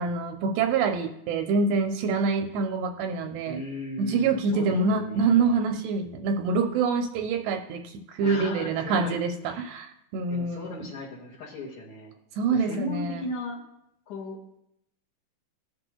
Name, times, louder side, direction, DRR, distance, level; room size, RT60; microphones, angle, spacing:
voice 1, 0.0-3.6 4.0-10.9 12.4-13.2, right 4 dB, 80° right, 4 dB, 2.6 m, -26 dB
voice 2, 3.4-5.6 7.2-7.3 8.2-9.2 9.4-9.7 10.3-12.1 12.5-13.6 14.1-14.4, left 1 dB, 50° left, -8 dB, 2.9 m, -36 dB
19.5 x 8.0 x 2.3 m, 0.79 s
omnidirectional pair, 5.4 m